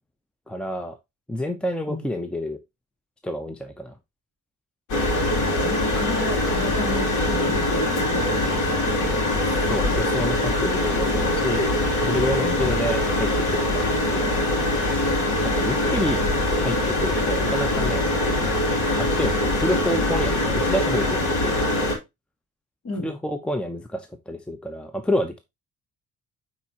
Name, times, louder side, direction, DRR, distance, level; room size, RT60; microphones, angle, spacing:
voice 1, 0.5-1.0 1.3-2.6 3.2-4.0 9.7-11.7 12.0-14.4 15.4-16.2 16.6-18.5 19.0-21.9 23.0-25.4, left 1 dB, 5° left, 7 dB, 0.7 m, -29 dB
sound 1, 4.9-21.9, left 1 dB, 80° left, 2.9 m, -23 dB
voice 2, 5.6-8.4 12.4-12.7 22.8-23.1, left 2 dB, 50° left, 2 dB, 3.2 m, -32 dB
9.0 x 4.3 x 2.9 m, 0.22 s
cardioid pair, 90°, 30 cm